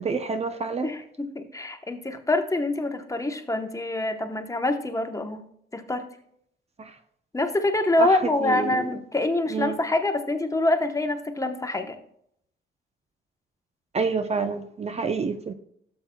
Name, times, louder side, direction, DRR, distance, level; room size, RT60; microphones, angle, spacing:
voice 1, 0.0-0.9 6.8-6.9 8.0-8.9 9.5-9.8 13.9-15.5, right 4 dB, 30° right, 0.6 m, -28 dB
voice 2, 0.8-5.4 5.7-6.1 7.3-12.0, left 2 dB, 15° left, 1.0 m, -25 dB
12.5 x 7.5 x 2.2 m
cardioid pair, 90°, 20 cm